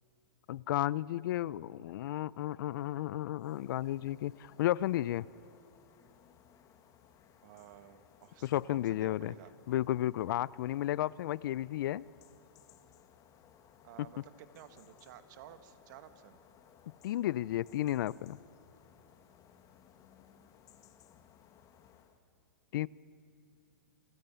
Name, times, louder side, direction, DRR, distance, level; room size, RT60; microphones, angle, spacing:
voice 1, 0.5-5.3 8.4-9.3 9.7-12.0 17.0-18.4 22.7-22.9, left 14 dB, 60° left, 23 dB, 0.5 m, -33 dB
sound 1, 3.3-22.2, left 8 dB, 25° left, 1.5 m, -62 dB
voice 2, 7.4-9.5 13.8-16.4, right 11 dB, 50° right, 10 dB, 1.6 m, -54 dB
27.5 x 17.0 x 9.2 m, 2.6 s
hypercardioid pair, 135°, 12 cm